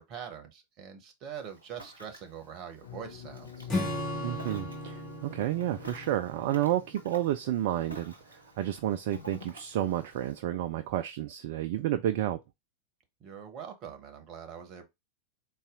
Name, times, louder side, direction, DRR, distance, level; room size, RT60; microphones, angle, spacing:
voice 1, 0.0-3.7 13.2-14.9, right 8 dB, 35° right, 0.9 m, -43 dB
Ocean, 1.4-10.4, left 1 dB, 85° left, 1.0 m, -52 dB
sound 1, 2.8-7.3, left 8 dB, 55° left, 0.5 m, -46 dB
Acoustic guitar / Strum, 3.7-7.2, left 1 dB, 25° left, 1.9 m, -36 dB
voice 2, 4.2-12.4, right 12 dB, 50° right, 0.3 m, -31 dB
4.0 x 2.3 x 3.7 m
figure-of-eight pair, 90°, 0 cm